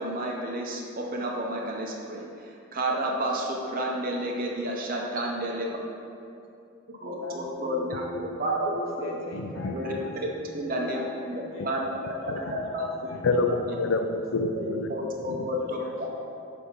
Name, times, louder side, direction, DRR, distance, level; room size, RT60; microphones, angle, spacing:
voice 1, 0.0-2.3 2.7-5.8 7.0-8.0 8.4-8.7 9.0-9.1 9.7-9.9 10.5-11.9 12.4-12.8 14.5-15.8, right 1 dB, 45° right, -1 dB, 0.7 m, -30 dB
voice 2, 7.0-11.7 12.2-13.3 14.1-14.2 15.0-16.3, left 2 dB, 90° left, -1 dB, 0.9 m, -41 dB
voice 3, 9.3-10.0 12.3-12.4 13.1-14.9 15.2-15.5, left 3 dB, 65° left, 7 dB, 0.4 m, -28 dB
7.8 x 2.8 x 5.3 m, 2.5 s
head